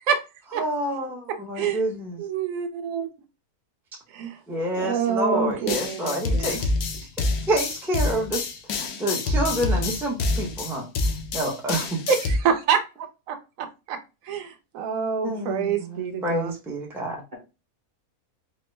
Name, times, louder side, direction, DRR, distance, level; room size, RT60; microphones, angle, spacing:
voice 1, 0.6-2.2 4.5-6.7 7.5-8.4 8.7-10.9 11.3-12.0 15.2-17.2, right 1 dB, ahead, -1 dB, 0.5 m, -28 dB
voice 2, 2.2-3.1 4.1-4.4 4.8-5.8 12.1-14.0 14.2-16.5, right 6 dB, 65° right, 6 dB, 1.0 m, -26 dB
voice 3, 5.6-6.6, right 3 dB, 35° right, -1 dB, 0.9 m, -38 dB
sound 1, 5.7-12.4, left 2 dB, 80° left, 1.1 m, -27 dB
4.3 x 2.1 x 3.1 m, 0.29 s
omnidirectional pair, 1.6 m